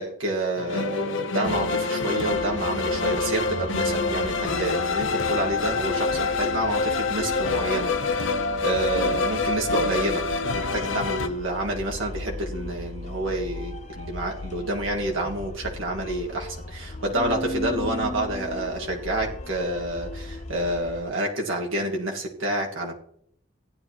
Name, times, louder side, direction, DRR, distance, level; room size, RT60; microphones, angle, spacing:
voice 1, 0.0-7.9 8.2-10.2 10.5-22.9, right 1 dB, 75° right, -1 dB, 1.7 m, -28 dB
sound 1, 0.6-11.3, left 4 dB, 70° left, 0.8 m, -26 dB
sound 2, 2.3-21.0, left 2 dB, 35° left, 0.6 m, -37 dB
15.5 x 10.0 x 3.0 m, 0.67 s
head